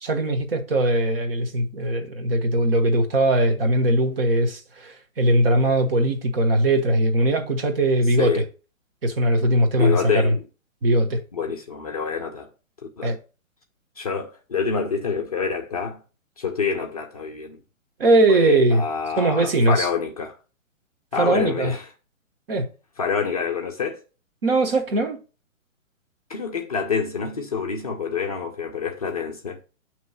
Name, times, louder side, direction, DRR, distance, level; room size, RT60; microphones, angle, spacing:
voice 1, 0.0-8.4 9.0-10.3 10.8-11.2 13.0-13.2 18.0-18.8 19.2-19.9 21.2-21.7 22.5-22.7 24.4-25.2, right 1 dB, 45° right, 1.0 m, -20 dB
voice 2, 9.8-10.4 11.3-12.5 12.8-13.1 14.0-16.0 16.4-17.6 18.3-20.4 21.1-21.9 23.0-24.0 26.3-29.6, left 6 dB, 30° left, 0.5 m, -27 dB
6.9 x 3.1 x 5.4 m
hypercardioid pair, 165°, 40 cm